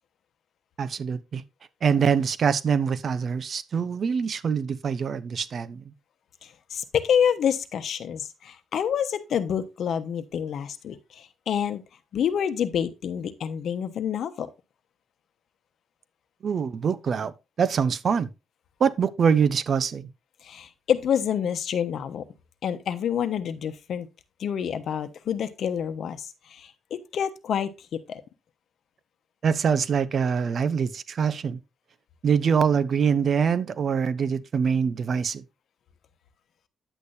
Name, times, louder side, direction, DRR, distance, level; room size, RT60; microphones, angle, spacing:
voice 1, 0.8-1.4 1.8-5.9 16.4-18.3 18.8-20.1 29.4-31.6 32.2-35.4, right 6 dB, 45° right, 0.7 m, -24 dB
voice 2, 6.4-11.8 12.1-14.5 20.4-22.2 22.6-24.1 24.4-28.2, left 8 dB, 60° left, 1.1 m, -28 dB
10.0 x 8.3 x 2.7 m
cardioid pair, 135°, 0 cm